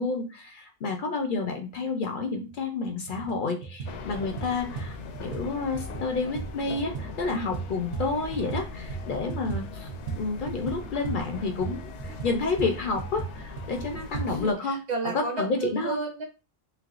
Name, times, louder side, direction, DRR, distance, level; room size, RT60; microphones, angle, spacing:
voice 1, 0.0-14.8 15.1-16.0, left 3 dB, 60° left, 4 dB, 0.6 m, -30 dB
sound 1, 2.5-2.6 3.0-3.4 3.6-8.6 8.9-14.3, right 6 dB, 65° right, 0.9 m, -36 dB
sound 2, 3.9-14.5, left 4 dB, 85° left, 0.9 m, -40 dB
voice 2, 11.4-11.9 14.2-16.2, right 3 dB, 40° right, 1 dB, 1.0 m, -33 dB
3.3 x 3.1 x 2.4 m, 0.31 s
omnidirectional pair, 1.1 m